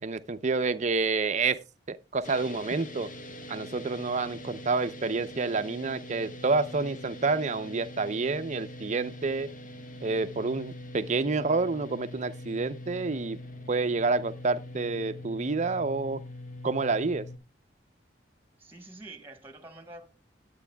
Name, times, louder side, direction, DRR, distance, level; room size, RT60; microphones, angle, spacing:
voice 1, 0.0-1.6 1.9-3.1 3.5-9.5 10.0-13.4 13.7-16.2 16.6-17.3, right 3 dB, 40° right, 0.6 m, -28 dB
sound 1, 2.2-17.4, left 1 dB, 45° left, 1.6 m, -43 dB
voice 2, 18.6-20.1, right 2 dB, 10° right, 1.4 m, -46 dB
17.5 x 9.2 x 2.3 m
head